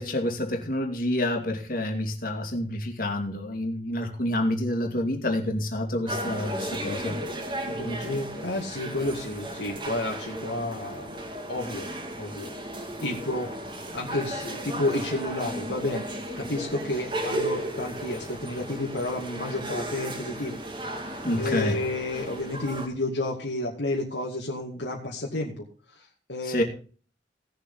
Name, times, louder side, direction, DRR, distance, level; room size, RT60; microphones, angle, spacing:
voice 1, 0.0-7.2 21.2-21.8 26.4-26.6, left 1 dB, 50° left, 3 dB, 2.6 m, -28 dB
sound 1, 6.1-22.9, right 1 dB, 25° right, 2.2 m, -35 dB
voice 2, 7.7-11.2 11.5-11.9 12.1-13.5 13.9-16.1 16.4-20.6 21.0-25.6 25.9-26.6, left 2 dB, 80° left, -3 dB, 2.3 m, -31 dB
18.0 x 7.3 x 4.0 m, 0.39 s
head